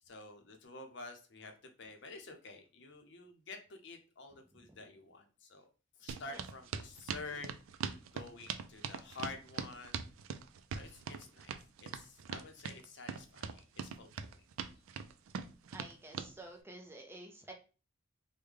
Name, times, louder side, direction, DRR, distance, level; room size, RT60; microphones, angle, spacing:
voice 1, 0.1-1.5 1.8-5.6 6.0-7.5 7.8-10.1 10.7-11.5 11.8-14.1, left 3 dB, 55° left, 5 dB, 0.6 m, -49 dB
sound 1, 6.1-16.3, right 6 dB, 75° right, 0.3 m, -41 dB
voice 2, 15.7-17.5, right 2 dB, 10° right, 2 dB, 0.5 m, -50 dB
3.4 x 2.2 x 3.2 m, 0.34 s
head